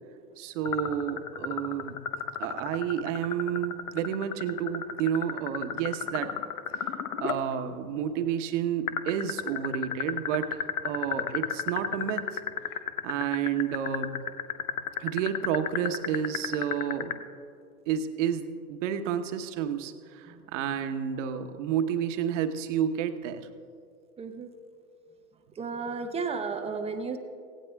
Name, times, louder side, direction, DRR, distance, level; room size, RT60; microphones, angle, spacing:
voice 1, 0.4-2.0 2.4-6.3 7.2-12.4 13.0-14.2 15.0-17.2 17.9-23.4, right 9 dB, 55° right, 8 dB, 1.0 m, -30 dB
sound 1, 0.6-7.4 8.9-17.1, left 9 dB, 70° left, 1.0 m, -31 dB
voice 2, 24.2-24.5 25.6-27.2, right 5 dB, 15° right, 7 dB, 0.6 m, -33 dB
17.5 x 16.5 x 2.3 m, 2.3 s
hypercardioid pair, 110°, 45 cm